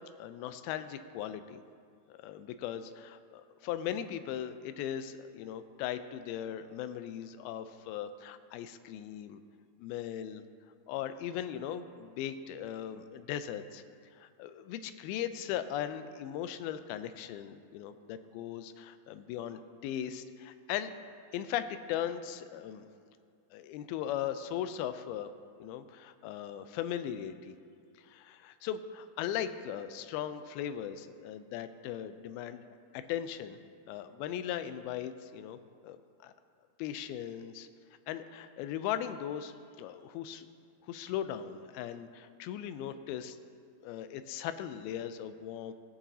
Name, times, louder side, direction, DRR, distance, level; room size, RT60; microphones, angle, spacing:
voice 1, 0.2-1.6 2.1-9.4 9.8-10.4 10.9-13.8 14.2-20.9 21.3-22.9 23.5-25.3 25.6-27.5 28.0-32.7 32.9-33.6 33.9-35.6 35.8-36.3 36.8-37.7 38.1-40.5 40.9-43.4 43.8-45.7, left 10 dB, 85° left, 11 dB, 2.4 m, -38 dB
20.5 x 7.1 x 2.7 m, 2.2 s
omnidirectional pair, 4.4 m